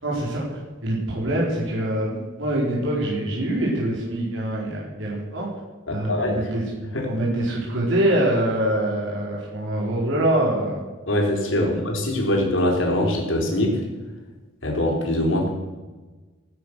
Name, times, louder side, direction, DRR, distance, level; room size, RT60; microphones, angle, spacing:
voice 1, 0.0-5.5 5.9-6.6 7.1-10.8 11.5-11.7, right 1 dB, 70° right, -5 dB, 4.6 m, -24 dB
voice 2, 5.9-6.5 6.9-7.1 11.1-13.8 14.6-15.5, left 1 dB, 65° left, 0 dB, 4.1 m, -23 dB
18.0 x 9.7 x 6.6 m, 1.3 s
head